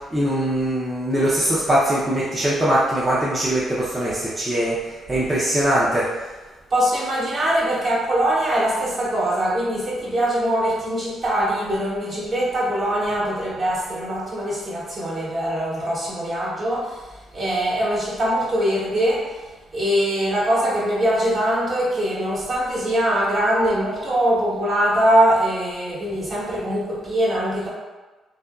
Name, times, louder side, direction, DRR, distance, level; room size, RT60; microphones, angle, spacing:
voice 1, 0.1-6.1, right 1 dB, 20° right, -9 dB, 0.6 m, -21 dB
voice 2, 6.7-27.7, right 1 dB, 45° right, -7 dB, 1.0 m, -22 dB
2.8 x 2.5 x 2.3 m, 1.2 s
cardioid pair, 90°, 0 cm